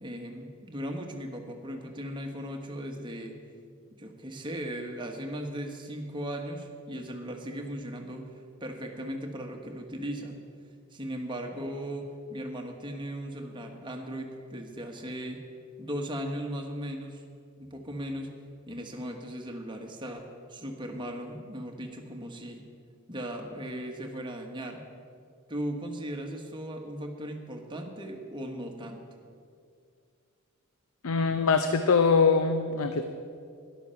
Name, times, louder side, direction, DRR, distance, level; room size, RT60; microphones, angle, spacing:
voice 1, 0.0-3.4 4.0-8.3 8.6-10.4 10.9-15.4 15.8-17.2 17.6-18.3 18.7-22.6 23.1-24.8 25.5-29.0, equal, 20° right, 2 dB, 1.3 m, -37 dB
voice 2, 31.0-33.1, left 5 dB, 65° left, 8 dB, 0.6 m, -23 dB
13.0 x 11.0 x 5.7 m, 2.3 s
head